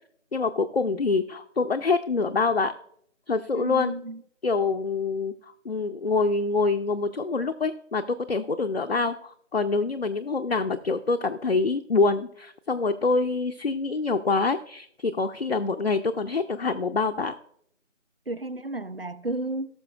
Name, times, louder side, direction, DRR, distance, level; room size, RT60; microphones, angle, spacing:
voice 1, 0.3-2.7 3.3-3.9 4.4-17.3, left 4 dB, 55° left, 0.5 m, -26 dB
voice 2, 3.6-4.2 18.3-19.7, right 2 dB, 50° right, 0.5 m, -32 dB
18.5 x 6.2 x 2.3 m
figure-of-eight pair, 175°, 38 cm